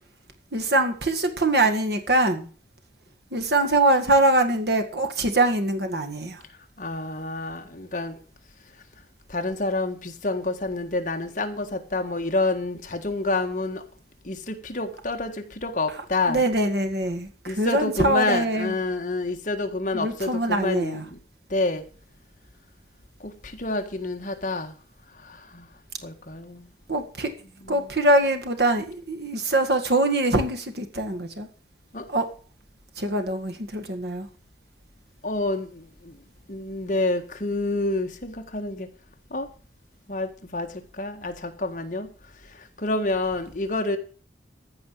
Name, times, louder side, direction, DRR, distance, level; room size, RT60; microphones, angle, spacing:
voice 1, 0.5-2.5 3.3-6.4 16.3-18.8 19.9-21.0 26.9-27.3 27.7-31.5 32.1-32.2 33.0-34.3, right 2 dB, 65° right, 1.9 m, -23 dB
voice 2, 6.8-8.2 9.3-13.8 14.2-16.4 17.4-21.2 21.5-21.8 23.2-24.8 25.1-25.7 26.0-26.7 27.6-27.9 31.9-32.1 35.2-36.2 36.5-38.9 39.3-39.5 40.1-42.1 42.3-44.0, left 2 dB, 45° left, 1.6 m, -28 dB
14.5 x 5.2 x 8.4 m
head